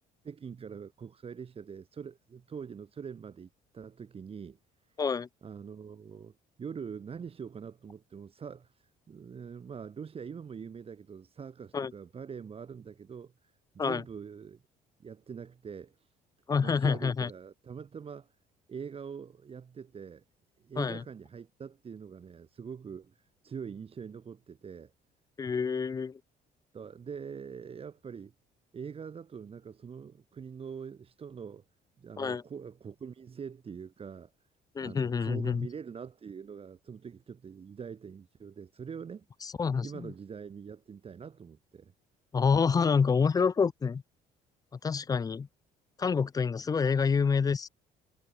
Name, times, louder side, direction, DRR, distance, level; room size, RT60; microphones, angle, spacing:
voice 1, 0.2-4.6 4.9-5.0 5.4-14.6 15.0-16.1 16.6-18.3 18.7-20.2 20.6-24.9 26.7-28.3 28.7-31.6 32.0-34.3 34.8-39.3 39.8-41.9, right 6 dB, 35° right, 1.6 m, -44 dB
voice 2, 5.0-5.3 11.7-11.9 13.8-14.0 16.5-17.3 20.8-21.0 25.4-26.2 32.2-32.4 34.8-35.7 39.4-40.1 42.3-44.0 44.8-45.5 46.0-47.7, left 5 dB, 20° left, 0.4 m, -27 dB
cardioid pair, 110°, 17 cm